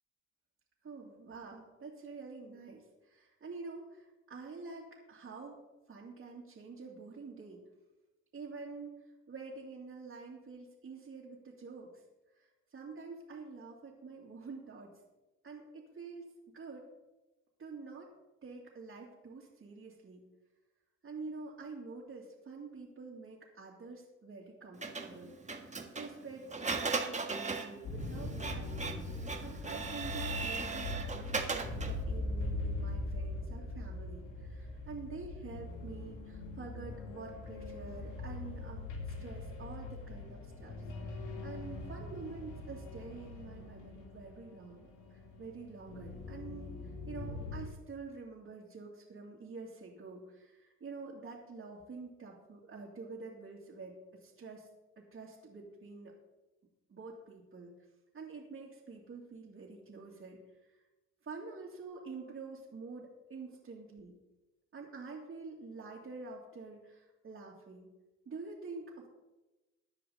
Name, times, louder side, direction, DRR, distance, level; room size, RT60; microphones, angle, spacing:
voice 1, 0.8-5.6 5.9-7.6 8.3-12.0 12.3-14.9 15.4-16.9 17.6-18.1 18.4-20.2 21.0-54.7 55.0-56.1 56.9-57.7 58.1-60.8 61.2-64.2 64.7-67.9 68.3-69.1, right 4 dB, 45° right, -6 dB, 2.8 m, -47 dB
Printer, 24.8-32.0, right 4 dB, 25° right, 1.6 m, -38 dB
sound 1, 27.8-47.7, left 2 dB, 85° left, 2.6 m, -41 dB
15.5 x 9.9 x 4.1 m, 1.1 s
cardioid pair, 90°, 30 cm